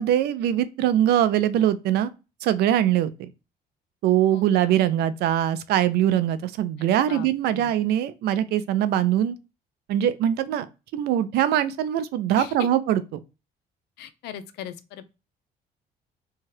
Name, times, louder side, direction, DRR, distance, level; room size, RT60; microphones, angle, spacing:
voice 1, 0.0-2.1 2.4-3.3 4.0-9.3 9.9-10.7 10.9-13.0, right 11 dB, 70° right, 0.4 m, -22 dB
voice 2, 6.8-7.7 12.4-12.5 14.0-15.1, left 9 dB, 80° left, 0.4 m, -40 dB
2.7 x 2.3 x 3.1 m
cardioid pair, 110°, 17 cm